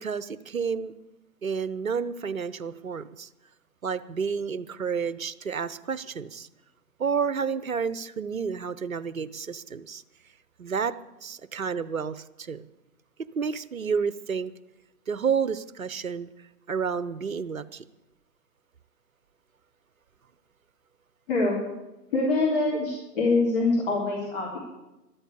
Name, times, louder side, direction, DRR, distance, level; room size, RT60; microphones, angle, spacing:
voice 1, 0.0-0.9 1.4-3.3 3.8-6.5 7.0-10.0 10.6-11.0 11.2-12.6 13.4-14.5 15.1-16.3 16.7-17.8, right 6 dB, 55° right, 16 dB, 0.9 m, -30 dB
voice 2, 21.3-21.6 22.1-24.6, left 3 dB, 35° left, -4 dB, 3.7 m, -24 dB
13.5 x 12.5 x 8.3 m, 1.0 s
figure-of-eight pair, 145°, 49 cm